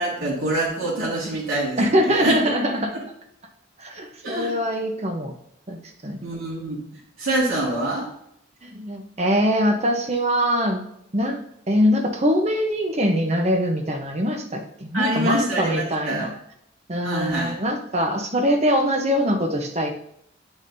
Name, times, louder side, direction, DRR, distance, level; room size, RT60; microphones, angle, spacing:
voice 1, 0.0-2.3 2.9-3.0 4.2-4.5 6.2-6.8 7.2-8.1 14.9-16.3 17.0-17.6, right 1 dB, 75° right, -7 dB, 1.9 m, -25 dB
voice 2, 1.8-2.9 3.8-5.3 5.7-6.3 8.6-10.8 11.1-11.4 11.7-16.3 16.9-19.9, equal, 30° right, 3 dB, 0.9 m, -23 dB
9.3 x 5.4 x 2.7 m, 0.73 s
head